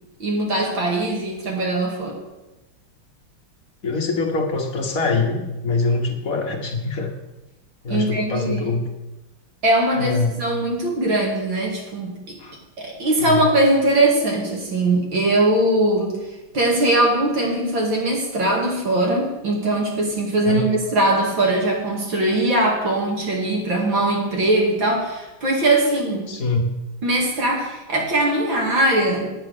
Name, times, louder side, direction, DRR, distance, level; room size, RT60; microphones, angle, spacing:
voice 1, 0.2-2.2 7.9-8.7 9.6-12.4 12.8-26.3 27.0-29.3, right 1 dB, 60° right, 0 dB, 3.2 m, -21 dB
voice 2, 3.8-7.1 7.8-8.8 9.9-10.4 12.4-12.6 13.2-13.4 20.4-20.7 26.3-26.8, left 3 dB, 45° left, 2 dB, 1.6 m, -24 dB
9.6 x 9.3 x 6.6 m, 1.0 s
omnidirectional pair, 2.4 m